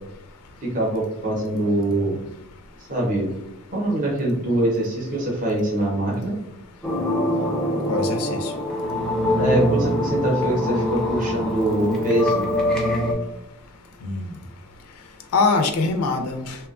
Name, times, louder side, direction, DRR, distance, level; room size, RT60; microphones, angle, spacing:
voice 1, 0.6-2.2 2.9-3.3 3.7-6.4 9.4-12.5, right 1 dB, 40° right, -3 dB, 0.7 m, -23 dB
sound 1, 6.8-13.1, left 1 dB, 5° left, 0.4 m, -23 dB
voice 2, 7.9-8.5 14.0-14.3 15.3-16.6, left 3 dB, 90° left, 5 dB, 0.4 m, -23 dB
2.8 x 2.2 x 2.3 m, 0.89 s
head